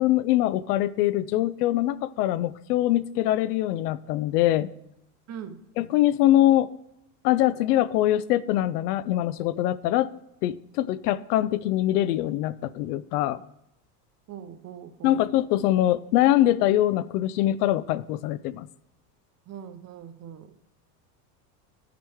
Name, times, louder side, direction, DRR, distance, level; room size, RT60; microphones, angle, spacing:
voice 1, 0.0-4.7 5.8-6.7 7.2-10.1 10.4-13.4 15.0-18.7, left 14 dB, 75° left, 16 dB, 0.6 m, -23 dB
voice 2, 5.3-5.6 14.3-15.2 19.5-20.6, right 8 dB, 35° right, 9 dB, 0.8 m, -41 dB
11.0 x 5.0 x 3.5 m, 0.80 s
supercardioid pair, 105°, 47 cm